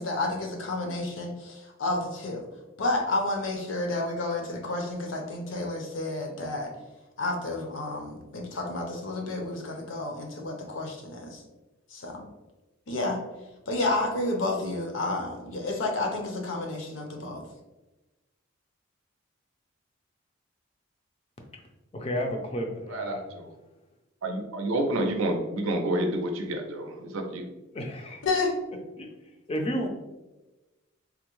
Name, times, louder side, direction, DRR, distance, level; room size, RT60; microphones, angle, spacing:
voice 1, 0.0-2.4 2.8-6.7 7.2-11.4 11.9-12.2 12.9-13.2 13.7-17.4 28.2-28.5, left 2 dB, 70° left, 2 dB, 0.6 m, -30 dB
voice 2, 21.9-23.2 27.7-28.2 29.0-29.1 29.5-29.9, equal, 30° left, 3 dB, 0.4 m, -31 dB
voice 3, 22.9-23.5 24.2-27.5, right 1 dB, 80° right, 4 dB, 0.5 m, -29 dB
3.5 x 2.1 x 3.0 m, 1.1 s
head